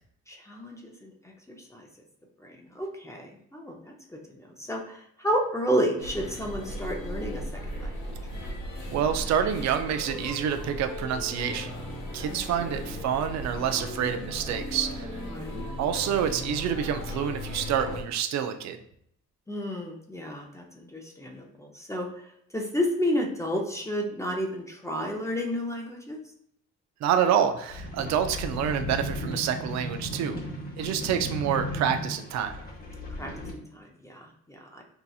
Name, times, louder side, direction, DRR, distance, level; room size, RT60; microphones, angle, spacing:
voice 1, 0.3-1.1 1.5-1.9 2.4-3.9 4.3-8.1 12.3-12.8 15.3-15.7 19.5-22.1 22.5-26.2 33.2-33.3 33.7-34.8, equal, 10° left, 0 dB, 0.5 m, -31 dB
sound 1, 6.0-18.0, left 1 dB, 75° left, 1.0 m, -37 dB
voice 2, 8.9-11.8 12.1-15.1 15.8-18.8 27.0-30.4 30.8-32.6, right 8 dB, 65° right, 7 dB, 0.4 m, -27 dB
sound 2, 27.7-33.5, equal, 30° left, 1.0 m, -35 dB
4.0 x 2.7 x 2.3 m, 0.71 s
cardioid pair, 90°, 30 cm